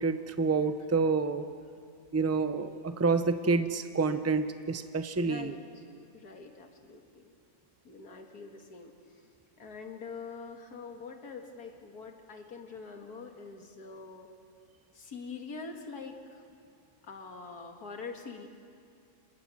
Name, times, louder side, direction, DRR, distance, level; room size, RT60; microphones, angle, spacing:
voice 1, 0.0-1.5 2.1-5.5, right 4 dB, 15° right, 10 dB, 0.5 m, -28 dB
voice 2, 5.2-5.8 6.1-7.3 7.8-9.2 9.6-14.3 14.9-16.5 17.0-18.5, left 4 dB, 80° left, 4 dB, 2.4 m, -44 dB
26.5 x 21.5 x 6.3 m, 2.4 s
omnidirectional pair, 1.6 m